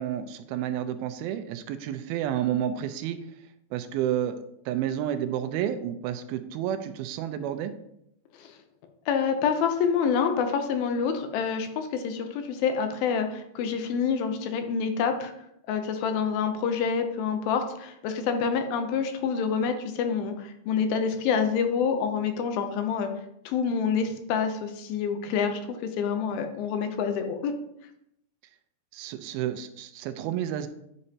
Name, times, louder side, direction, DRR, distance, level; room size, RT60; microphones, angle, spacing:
voice 1, 0.0-3.2 3.7-4.4 4.7-7.7 28.9-30.7, right 10 dB, 85° right, 9 dB, 2.4 m, -30 dB
voice 2, 9.1-15.3 15.7-23.1 23.5-27.5, left 6 dB, 80° left, 7 dB, 2.4 m, -27 dB
9.9 x 5.3 x 2.8 m, 0.77 s
omnidirectional pair, 4.3 m